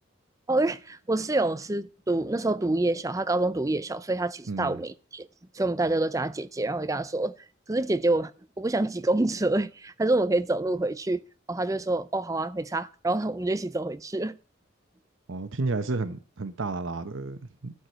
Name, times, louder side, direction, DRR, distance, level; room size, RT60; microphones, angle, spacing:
voice 1, 0.5-5.3 5.5-7.3 7.7-8.3 8.6-11.2 11.5-14.4, right 2 dB, 15° right, 0.5 m, -27 dB
voice 2, 4.5-4.8 15.3-17.7, right 3 dB, 80° right, 0.8 m, -32 dB
12.5 x 4.8 x 8.0 m
head